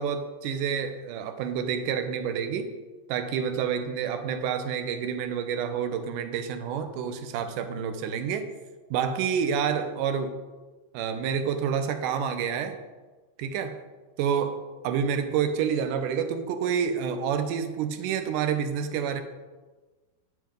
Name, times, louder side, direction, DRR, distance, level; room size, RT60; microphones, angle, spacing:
voice 1, 0.0-2.7 3.1-8.5 8.9-10.3 10.9-12.8 13.4-13.8 14.2-19.2, right 7 dB, 75° right, 9 dB, 1.9 m, -28 dB
9.9 x 7.8 x 5.2 m, 1.3 s
omnidirectional pair, 4.6 m